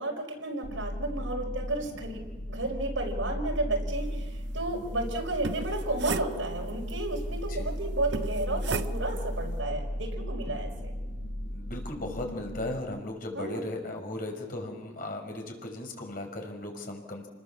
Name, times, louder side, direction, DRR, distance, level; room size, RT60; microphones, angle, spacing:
voice 1, 0.0-2.2 2.5-4.3 4.5-10.9 13.4-13.7, right 2 dB, 75° right, 1 dB, 5.6 m, -32 dB
sound 1, 0.6-12.8, equal, 85° left, 3.4 m, -35 dB
sound 2, 5.3-6.9 8.1-9.3, right 4 dB, 60° right, 0.8 m, -36 dB
voice 2, 7.3-7.7 11.5-17.3, left 1 dB, 45° left, 2 dB, 5.5 m, -37 dB
30.0 x 20.5 x 7.3 m, 1.2 s
head